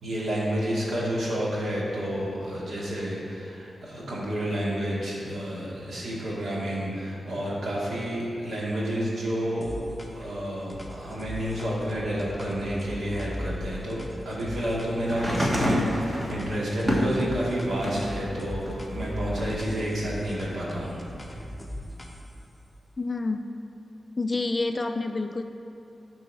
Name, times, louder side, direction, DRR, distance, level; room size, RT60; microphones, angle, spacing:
voice 1, 0.0-9.8 10.1-21.0, equal, 70° right, -5 dB, 2.1 m, -30 dB
sound 1, 9.6-10.3 10.7-16.0 16.3-17.7 18.0-22.4, equal, 5° left, 0.8 m, -38 dB
sound 2, 15.1-18.1 18.6-19.8 20.8-20.9, equal, 25° right, 1.2 m, -28 dB
voice 2, 23.0-23.5 24.2-25.4, left 3 dB, 25° left, 7 dB, 0.3 m, -28 dB
12.0 x 4.7 x 4.7 m, 2.7 s
wide cardioid pair, 165°, 0 cm